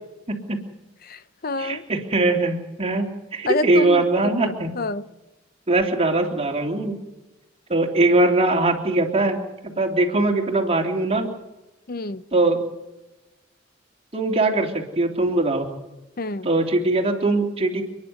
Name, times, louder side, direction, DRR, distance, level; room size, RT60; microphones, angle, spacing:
voice 1, 1.0-1.8 3.5-5.0 11.9-12.2 16.2-16.5, left 3 dB, 50° left, 0.7 m, -28 dB
voice 2, 1.6-3.1 3.3-4.7 5.7-6.9 7.7-9.4 9.6-11.3 12.3-12.6 14.1-15.6 16.4-17.8, right 2 dB, 30° right, 3.2 m, -21 dB
29.5 x 10.5 x 9.5 m
head